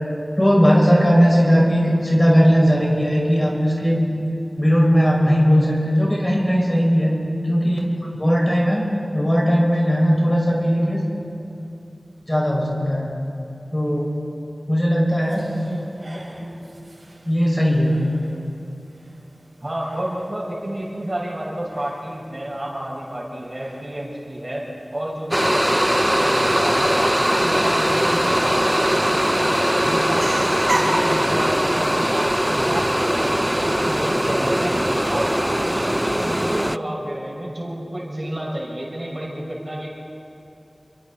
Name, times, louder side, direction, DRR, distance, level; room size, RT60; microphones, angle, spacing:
voice 1, 0.4-4.1 4.6-7.2 7.4-8.8 9.1-11.0 12.3-13.1 13.7-14.1 14.7-15.5 16.4-16.5 17.2-18.0, equal, 20° left, -3 dB, 6.4 m, -18 dB
sound 1, 15.2-33.3, right 1 dB, 60° right, 5.8 m, -37 dB
voice 2, 19.6-24.6 24.9-34.8 35.1-39.9, right 1 dB, 40° right, -4 dB, 6.4 m, -30 dB
sound 2, 25.3-36.8, equal, 10° right, 0.4 m, -20 dB
30.0 x 23.0 x 4.4 m, 2.8 s
wide cardioid pair, 40°, 0 cm